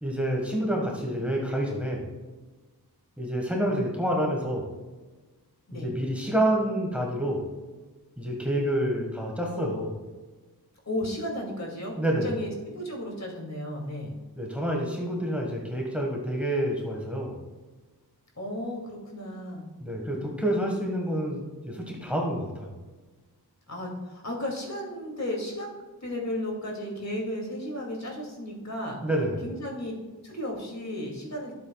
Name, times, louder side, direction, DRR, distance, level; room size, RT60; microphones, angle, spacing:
voice 1, 0.0-2.1 3.2-4.7 5.7-7.4 8.2-10.0 12.0-12.3 14.4-17.4 19.8-22.7 29.0-29.4, right 1 dB, 5° right, -1 dB, 1.5 m, -28 dB
voice 2, 10.9-14.2 18.4-19.7 20.0-20.3 23.7-25.7 26.0-29.0 29.4-29.9 30.2-31.5, left 1 dB, 45° left, -1 dB, 2.5 m, -34 dB
12.0 x 7.6 x 2.3 m, 1.3 s
wide cardioid pair, 95°, 38 cm